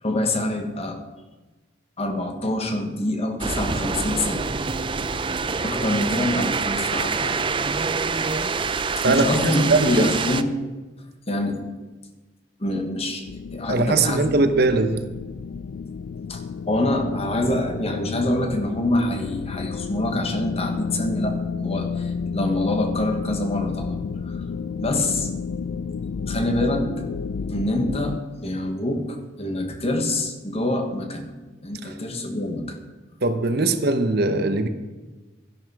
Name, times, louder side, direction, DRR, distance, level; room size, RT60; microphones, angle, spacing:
voice 1, 0.0-1.0 2.0-4.5 5.6-7.4 9.0-10.5 11.3-11.6 12.6-14.4 16.3-24.4 24.8-25.3 26.3-26.9 27.5-31.3 31.6-32.8, left 1 dB, 30° left, 5 dB, 1.4 m, -26 dB
sound 1, 3.4-10.4, right 4 dB, 25° right, 0.5 m, -26 dB
voice 2, 9.0-10.1 13.7-15.0 31.8-31.9 33.2-34.7, right 3 dB, 55° right, 8 dB, 1.0 m, -21 dB
sound 2, 13.3-28.2, left 5 dB, 70° left, 0.4 m, -31 dB
13.0 x 11.0 x 4.8 m, 1.2 s
head